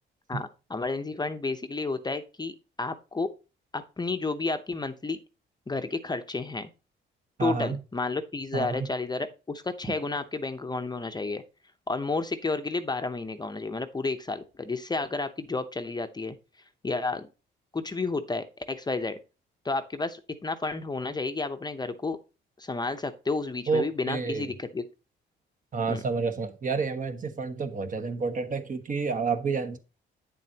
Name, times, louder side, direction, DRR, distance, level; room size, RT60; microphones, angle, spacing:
voice 1, 0.3-3.3 3.7-5.2 5.7-6.7 7.4-11.4 11.9-16.4 16.8-17.3 17.7-19.2 19.6-22.2 22.6-24.8 25.9-26.0, left 3 dB, 20° left, 0.8 m, -31 dB
voice 2, 7.4-7.8 8.5-8.9 23.7-24.5 25.7-29.8, right 4 dB, 40° right, 1.3 m, -29 dB
9.1 x 7.4 x 2.9 m
cardioid pair, 90°, 20 cm